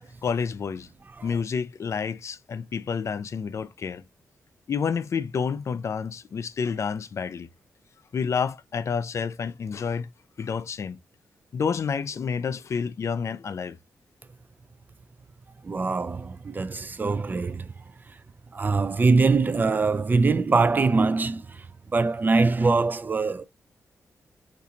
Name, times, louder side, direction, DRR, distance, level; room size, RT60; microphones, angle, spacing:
voice 1, 0.2-0.9 1.2-4.0 4.7-7.5 8.1-10.1 10.4-11.0 11.5-13.8, left 6 dB, 55° left, 0.4 m, -29 dB
voice 2, 15.6-17.7 18.1-18.2 18.5-21.7 21.9-23.4, right 4 dB, 30° right, 0.4 m, -23 dB
3.8 x 2.6 x 2.8 m
cardioid pair, 65°, 6 cm